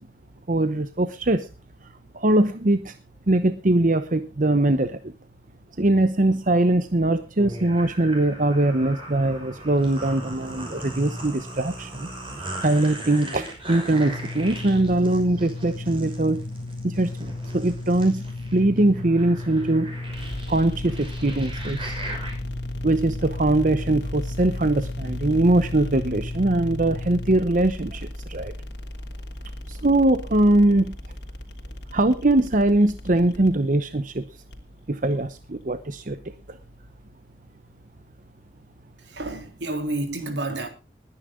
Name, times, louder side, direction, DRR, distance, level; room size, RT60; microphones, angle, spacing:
voice 1, 0.5-1.5 1.8-2.9 3.3-5.1 5.8-12.1 12.6-16.4 16.8-18.2 18.5-19.9 20.5-21.9 22.8-28.5 29.7-31.0 31.9-34.2 34.9-36.2 36.5-36.6, right 2 dB, 45° right, 0.9 m, -22 dB
sound 1, 7.4-22.3, right 1 dB, 30° right, 6.0 m, -38 dB
sound 2, 13.9-27.4, left 2 dB, 60° left, 2.1 m, -35 dB
sound 3, 20.1-37.1, left 1 dB, 75° left, 3.0 m, -38 dB
voice 2, 39.0-40.7, right 2 dB, 80° right, 3.3 m, -30 dB
21.0 x 10.0 x 3.7 m
head